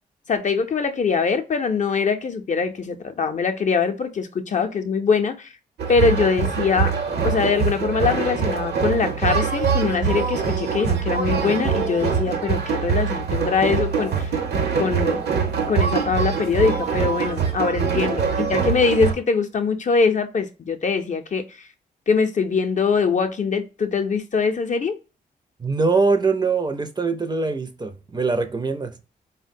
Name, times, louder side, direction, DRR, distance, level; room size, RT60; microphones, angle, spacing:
voice 1, 0.3-5.5 5.9-6.9 7.2-14.3 14.8-15.2 15.7-21.6 22.1-24.9, left 5 dB, 45° left, 0.5 m, -22 dB
sound 1, 5.8-19.1, right 6 dB, 70° right, 0.8 m, -23 dB
voice 2, 25.6-29.0, right 4 dB, 25° right, 0.5 m, -23 dB
3.5 x 2.1 x 2.6 m
cardioid pair, 60°, 18 cm